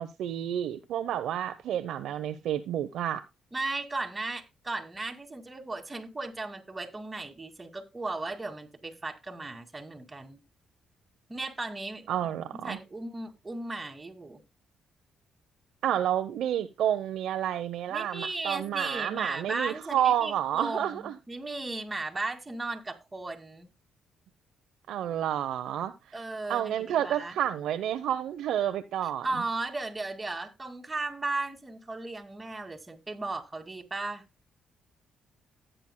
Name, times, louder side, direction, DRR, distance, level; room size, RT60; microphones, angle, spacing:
voice 1, 0.0-3.2 12.1-12.8 15.8-21.1 24.9-25.9 26.5-29.3, right 10 dB, 80° right, 0.7 m, -30 dB
voice 2, 3.5-10.4 11.3-14.4 17.9-23.7 26.1-27.4 29.2-34.2, right 2 dB, 20° right, 2.2 m, -36 dB
15.0 x 9.0 x 2.2 m
cardioid pair, 90°, 0 cm